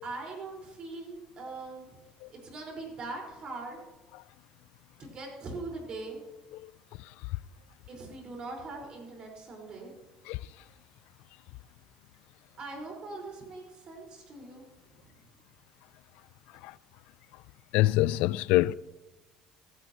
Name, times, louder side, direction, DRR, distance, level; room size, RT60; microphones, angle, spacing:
voice 1, 0.0-2.0 2.3-3.8 5.0-6.2 7.9-9.9 12.6-14.6, right 3 dB, 45° right, 4.8 m, -41 dB
voice 2, 17.7-18.7, left 17 dB, 75° left, 0.3 m, -24 dB
15.5 x 15.5 x 3.0 m
supercardioid pair, 105°, 2 cm